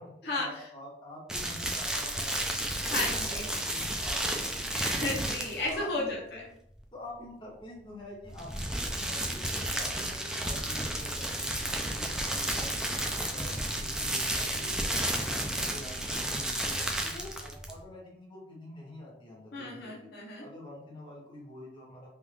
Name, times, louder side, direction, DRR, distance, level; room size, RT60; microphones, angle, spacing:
voice 1, 0.0-2.7 3.2-4.7 5.7-6.4 6.9-8.7 8.9-13.0 13.3-22.1, left 1 dB, 25° left, -4 dB, 1.0 m, -47 dB
sound 1, 1.3-5.8 8.2-17.8, right 1 dB, 5° right, 0.3 m, -32 dB
voice 2, 2.9-3.5 4.7-6.4 19.5-20.4, left 2 dB, 60° left, -3 dB, 0.8 m, -34 dB
sound 2, 9.2-16.5, equal, 35° right, 1.0 m, -48 dB
3.5 x 2.5 x 3.2 m, 0.72 s
head